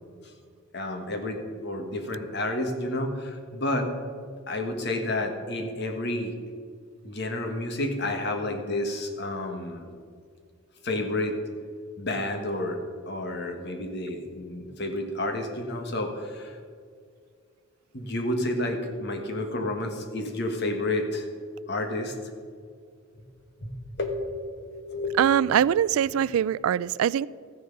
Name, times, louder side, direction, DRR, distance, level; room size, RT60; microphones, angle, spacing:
voice 1, 0.7-3.9 4.5-6.3 7.0-9.9 10.8-11.4 12.0-16.6 17.9-21.3 21.7-22.1 23.6-23.7 24.0-25.2, left 1 dB, 50° left, 1.5 m, -30 dB
voice 2, 25.2-27.3, right 9 dB, 80° right, 0.3 m, -22 dB
14.0 x 10.0 x 5.3 m
head